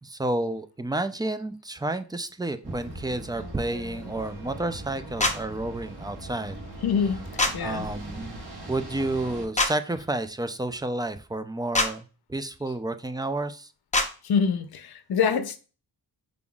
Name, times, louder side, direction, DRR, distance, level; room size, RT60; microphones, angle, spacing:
voice 1, 0.0-6.6 7.6-8.4 8.7-13.7, right 2 dB, 10° right, 0.4 m, -30 dB
sound 1, 2.6-9.5, right 1 dB, 75° right, 1.3 m, -40 dB
sound 2, 5.2-5.4 7.4-7.5 9.6-9.7 11.7-11.9 13.9-14.1, left 2 dB, 20° left, 0.8 m, -22 dB
voice 2, 6.8-7.2 7.5-7.9 14.2-15.6, left 6 dB, 70° left, 0.6 m, -25 dB
5.0 x 3.7 x 2.3 m
cardioid pair, 65°, 39 cm